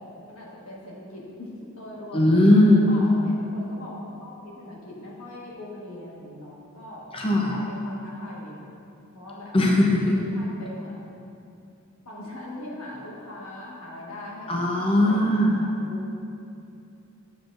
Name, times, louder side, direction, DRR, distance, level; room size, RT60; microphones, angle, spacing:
voice 1, 0.3-2.2 2.6-7.0 7.5-8.7 9.1-9.5 10.1-11.0 12.0-16.0, left 1 dB, 90° left, -4 dB, 1.4 m, -40 dB
voice 2, 2.1-2.9 7.1-7.5 9.5-10.2 14.5-15.7, left 1 dB, 25° left, -1 dB, 0.6 m, -19 dB
7.6 x 7.2 x 2.5 m, 2.6 s
head